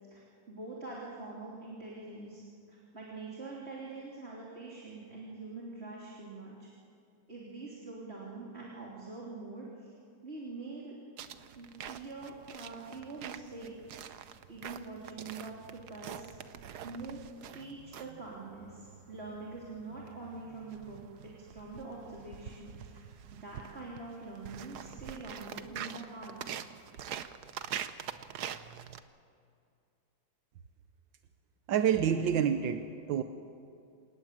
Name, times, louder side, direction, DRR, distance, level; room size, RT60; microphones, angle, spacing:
voice 1, 0.5-2.4 2.7-6.7 7.3-9.9 10.2-10.9 11.6-13.7 14.2-17.2 17.5-23.1 23.3-26.4, right 3 dB, 35° right, -5 dB, 3.5 m, -44 dB
sound 1, 11.2-29.0, right 9 dB, 65° right, 1.3 m, -45 dB
voice 2, 31.7-33.2, right 8 dB, 85° right, 8 dB, 1.6 m, -28 dB
27.5 x 18.5 x 7.5 m, 2.4 s
omnidirectional pair, 2.0 m